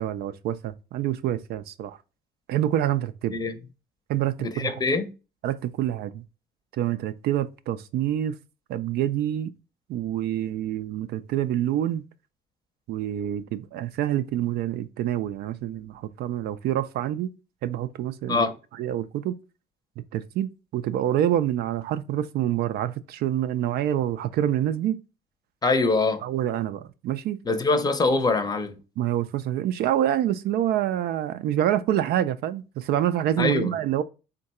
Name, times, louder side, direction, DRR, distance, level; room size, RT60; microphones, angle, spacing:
voice 1, 0.0-2.0 2.5-3.4 4.1-4.8 5.4-6.2 6.8-8.4 8.7-9.5 9.9-12.0 12.9-17.3 17.6-18.4 18.7-19.4 20.1-25.0 26.2-27.4 29.0-34.0, right 11 dB, 70° right, 0.4 m, -26 dB
voice 2, 4.4-5.1 18.3-18.5 25.6-26.2 27.4-28.8 33.4-33.7, left 3 dB, 25° left, 0.6 m, -23 dB
3.7 x 2.2 x 4.1 m
cardioid pair, 110°, 17 cm